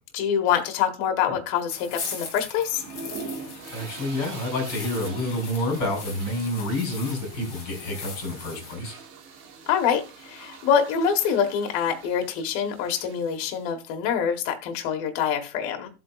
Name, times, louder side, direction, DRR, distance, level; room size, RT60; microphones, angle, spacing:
voice 1, 0.1-2.8 9.7-15.9, left 8 dB, 80° left, 5 dB, 2.1 m, -25 dB
sound 1, 1.7-8.7, left 5 dB, 45° left, 1.9 m, -40 dB
sound 2, 2.7-13.7, right 4 dB, 65° right, 3.8 m, -43 dB
voice 2, 3.7-8.9, left 1 dB, 25° left, 1 dB, 4.0 m, -28 dB
14.5 x 7.7 x 2.3 m, 0.29 s
omnidirectional pair, 5.9 m